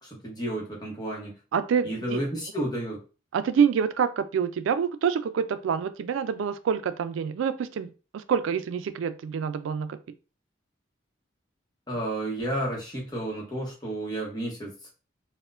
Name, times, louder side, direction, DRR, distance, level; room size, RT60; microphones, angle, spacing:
voice 1, 0.0-1.3 1.8-3.0 11.9-14.9, right 1 dB, 20° left, -2 dB, 0.9 m, -32 dB
voice 2, 1.5-2.2 3.3-10.0, right 7 dB, 85° right, 12 dB, 0.3 m, -27 dB
4.1 x 2.1 x 2.4 m, 0.33 s
head